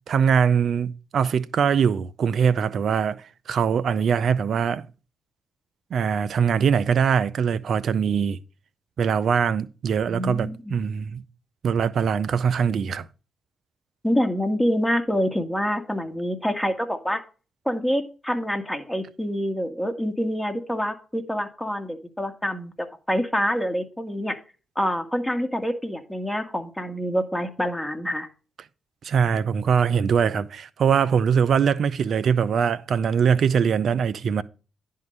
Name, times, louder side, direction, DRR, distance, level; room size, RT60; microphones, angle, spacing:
voice 1, 0.1-3.2 3.5-4.8 5.9-8.4 9.0-11.2 11.6-13.1 29.0-34.4, right 7 dB, 65° right, 0.5 m, -22 dB
voice 2, 10.1-10.8 14.0-17.2 17.7-24.4 24.8-28.3, equal, 5° left, 1.8 m, -26 dB
10.5 x 3.8 x 6.5 m
supercardioid pair, 50°, 0 cm